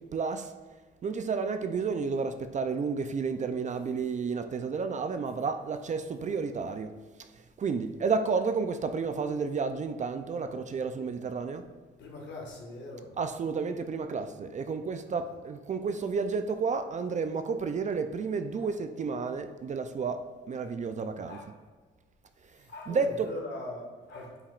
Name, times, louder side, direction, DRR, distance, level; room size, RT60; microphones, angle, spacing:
voice 1, 0.1-0.5 1.0-6.9 7.6-11.6 13.2-21.4 22.9-23.4, right 5 dB, 40° right, 0.4 m, -31 dB
voice 2, 12.0-13.1 15.0-15.3 18.6-18.7 20.5-20.6 21.3-21.5 22.5-24.4, left 1 dB, 60° left, 1.6 m, -42 dB
8.7 x 4.8 x 2.4 m
cardioid pair, 90°, 20 cm